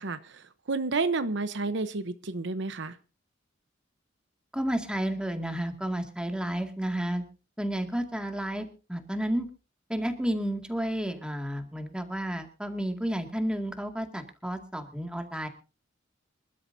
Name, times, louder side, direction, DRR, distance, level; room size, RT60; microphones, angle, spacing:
voice 1, 0.0-3.0, right 3 dB, 65° right, 12 dB, 0.9 m, -31 dB
voice 2, 4.5-7.2 7.6-9.5 9.9-15.5, right 1 dB, 5° right, 5 dB, 2.1 m, -31 dB
26.0 x 12.5 x 2.7 m, 0.33 s
head